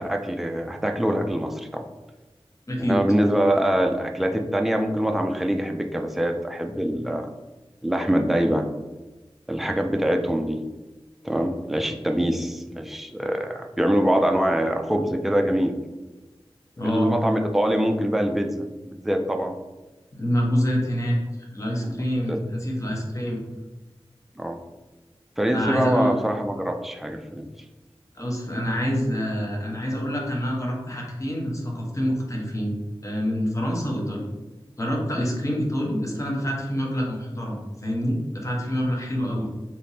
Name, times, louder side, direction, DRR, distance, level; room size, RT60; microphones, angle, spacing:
voice 1, 0.0-1.9 2.8-7.3 7.8-8.7 9.5-10.6 11.2-15.7 16.8-19.6 21.8-22.0 22.3-22.4 24.4-24.6 25.4-27.5 39.4-39.5, equal, ahead, 4 dB, 0.4 m, -24 dB
voice 2, 2.7-3.0 16.8-17.1 20.1-21.2 21.5-23.4 25.5-26.1 28.1-32.7 33.0-34.3 34.8-39.5, equal, 30° left, -2 dB, 0.9 m, -26 dB
3.5 x 2.8 x 2.7 m, 1.2 s
wide cardioid pair, 45°, 10 cm